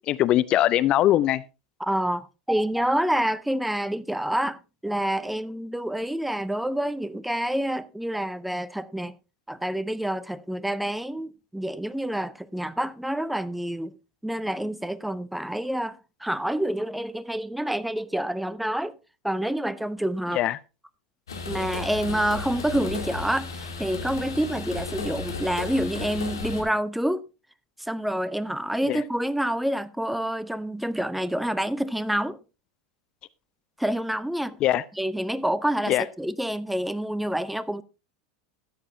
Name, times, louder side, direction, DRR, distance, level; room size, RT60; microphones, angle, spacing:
voice 1, 0.1-1.4 20.3-20.6 28.9-29.0 34.6-34.8 35.9-36.0, left 13 dB, 40° left, 0.4 m, -21 dB
voice 2, 1.8-9.1 9.5-13.9 14.2-18.9 19.2-20.4 21.5-27.2 27.8-32.4 33.8-34.6 35.0-37.8, right 1 dB, 5° right, 0.6 m, -28 dB
sound 1, 21.3-26.6, left 3 dB, 75° left, 2.4 m, -34 dB
13.5 x 9.1 x 2.7 m
figure-of-eight pair, 85°, 2 cm